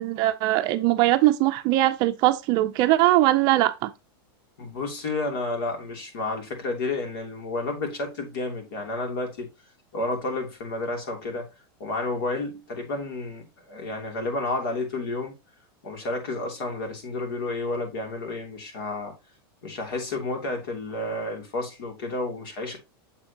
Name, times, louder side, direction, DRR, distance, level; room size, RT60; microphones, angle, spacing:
voice 1, 0.0-3.9, right 16 dB, 35° right, 0.5 m, -21 dB
voice 2, 4.6-9.5 9.9-11.5 11.8-15.3 15.8-19.1 19.6-22.8, left 2 dB, 65° left, 2.8 m, -31 dB
7.4 x 6.2 x 2.8 m
supercardioid pair, 165°, 13 cm